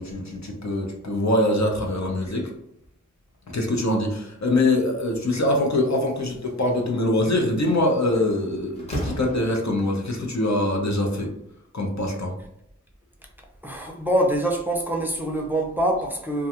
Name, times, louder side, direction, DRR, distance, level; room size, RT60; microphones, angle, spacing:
voice 1, 0.0-2.5 3.5-11.3 11.7-12.3, left 1 dB, 65° left, 0.6 m, -23 dB
Slam, 7.7-7.8 8.1-10.0, right 1 dB, 20° left, 0.8 m, -34 dB
voice 2, 13.6-16.5, right 1 dB, 5° right, 0.5 m, -24 dB
2.4 x 2.2 x 2.8 m
wide cardioid pair, 40°, 30 cm